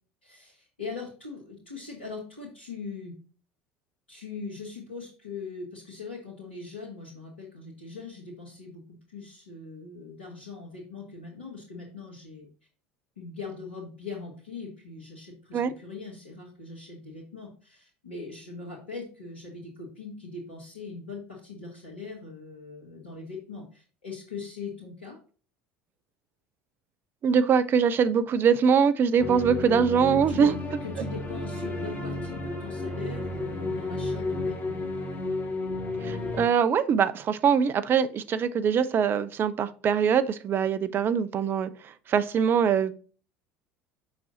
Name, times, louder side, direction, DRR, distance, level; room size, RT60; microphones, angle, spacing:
voice 1, 0.2-3.1 4.1-12.5 13.2-25.2 29.6-29.8 30.1-30.5 30.8-34.8, left 4 dB, 85° left, -4 dB, 1.8 m, -41 dB
voice 2, 27.2-30.5 36.0-41.7 42.1-42.9, right 7 dB, 40° right, 14 dB, 0.7 m, -23 dB
sound 1, 29.2-36.5, left 2 dB, 35° left, 3.0 m, -32 dB
7.2 x 6.2 x 2.8 m, 0.38 s
figure-of-eight pair, 70°, 6 cm